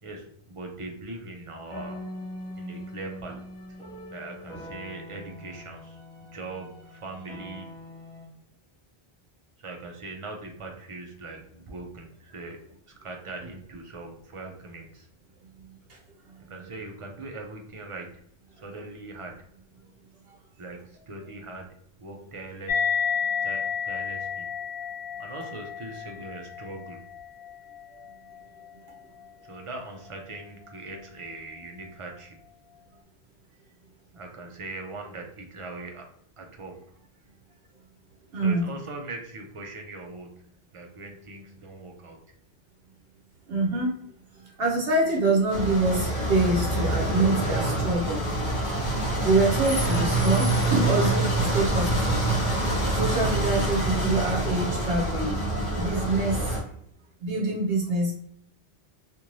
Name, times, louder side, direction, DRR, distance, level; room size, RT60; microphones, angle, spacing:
voice 1, 0.0-2.0 2.6-3.4 4.1-7.7 9.6-12.6 13.0-15.1 16.5-18.2 18.5-19.4 20.6-23.0 23.4-24.5 25.2-27.1 29.4-32.4 34.1-36.1 36.4-36.8 38.4-42.2, right 2 dB, 50° right, 2 dB, 0.4 m, -41 dB
sound 1, 1.7-8.2, left 1 dB, 5° left, 1.2 m, -42 dB
sound 2, 22.7-29.6, left 6 dB, 75° left, 0.8 m, -32 dB
voice 2, 38.3-38.7 43.5-44.1 44.6-48.3 49.2-52.2 52.9-55.4 55.8-56.5 57.2-58.1, right 2 dB, 65° right, -1 dB, 0.8 m, -25 dB
sound 3, 45.5-56.6, right 1 dB, 45° left, 1.0 m, -26 dB
2.5 x 2.5 x 3.0 m, 0.70 s
omnidirectional pair, 1.1 m